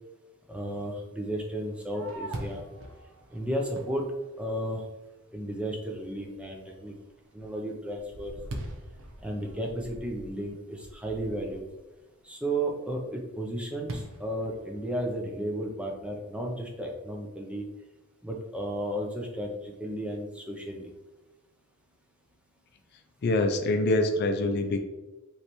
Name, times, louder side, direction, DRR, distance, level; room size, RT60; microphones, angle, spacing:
voice 1, 0.5-2.6 3.3-4.0 4.4-4.8 5.3-6.9 7.3-8.4 9.2-11.6 12.2-17.7 18.2-20.9, right 1 dB, 5° right, 0 dB, 0.5 m, -33 dB
Fireworks, 1.5-5.0 5.5-5.6 6.1-6.5 6.9-11.8 13.9-15.2, right 1 dB, 60° right, 0.7 m, -43 dB
voice 2, 23.2-24.8, left 2 dB, 45° left, 6 dB, 0.4 m, -25 dB
5.5 x 3.2 x 3.0 m, 1.1 s
head